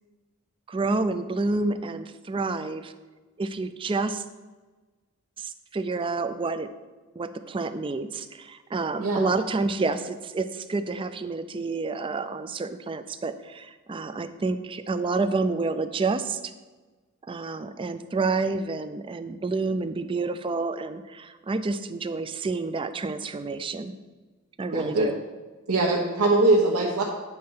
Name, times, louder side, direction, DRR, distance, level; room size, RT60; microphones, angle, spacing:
voice 1, 0.7-2.9 3.4-4.2 5.4-6.7 7.2-16.5 17.3-23.9 24.6-25.2, right 3 dB, 25° right, 10 dB, 0.3 m, -29 dB
voice 2, 24.7-25.1 25.7-27.0, right 2 dB, 80° right, -3 dB, 1.0 m, -22 dB
9.4 x 4.3 x 5.6 m, 1.3 s
head